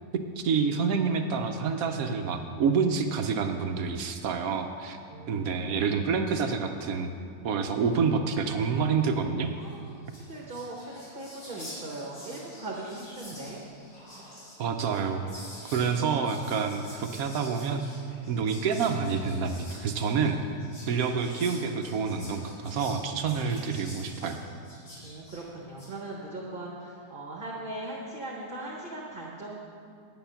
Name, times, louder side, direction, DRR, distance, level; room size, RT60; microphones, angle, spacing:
voice 1, 0.1-5.0 5.3-7.1 7.4-9.5 14.6-15.4 15.7-17.9 18.3-20.4 20.9-24.4, right 5 dB, 65° right, 6 dB, 1.1 m, -28 dB
voice 2, 5.1-5.9 7.5-7.6 9.6-13.6 25.0-29.6, right 2 dB, 35° right, -2 dB, 1.2 m, -40 dB
Whispering, 9.7-9.8 10.0-25.9, equal, 90° left, 3.7 m, -47 dB
9.8 x 9.0 x 5.7 m, 2.3 s
omnidirectional pair, 1.7 m